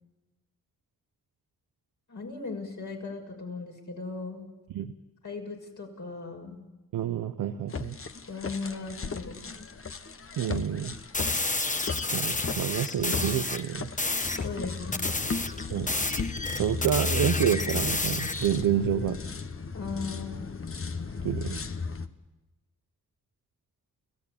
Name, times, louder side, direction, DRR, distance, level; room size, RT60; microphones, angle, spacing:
voice 1, 2.1-4.5 5.2-6.6 8.3-9.7 14.4-15.1 19.7-20.5, left 4 dB, 65° left, 1 dB, 6.2 m, -37 dB
voice 2, 6.9-8.0 10.4-10.9 12.1-13.9 15.7-16.1 16.6-19.2 21.2-21.6, right 10 dB, 90° right, 9 dB, 0.9 m, -28 dB
sound 1, 7.7-22.1, left 4 dB, 40° left, 1.4 m, -35 dB
sound 2, 11.1-13.6 14.0-14.4 14.9-18.6, left 2 dB, 25° left, 1.5 m, -30 dB
30.0 x 15.5 x 8.7 m, 1.1 s
cardioid pair, 50°, 33 cm